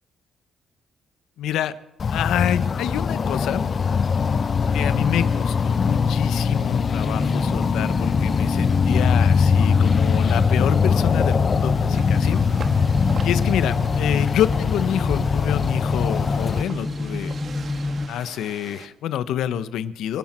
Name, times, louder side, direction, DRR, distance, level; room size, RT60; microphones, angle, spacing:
voice 1, 1.4-1.7 2.1-3.7 4.7-12.4 13.2-17.3 18.1-20.2, left 10 dB, 85° left, 13 dB, 1.0 m, -27 dB
sound 1, 2.0-16.6, left 6 dB, 40° left, 0.7 m, -21 dB
sound 2, 7.0-18.1, left 2 dB, 10° left, 1.6 m, -28 dB
sound 3, 11.9-18.9, right 5 dB, 50° right, 1.4 m, -42 dB
27.0 x 12.0 x 4.5 m, 0.89 s
cardioid pair, 90°, 0 cm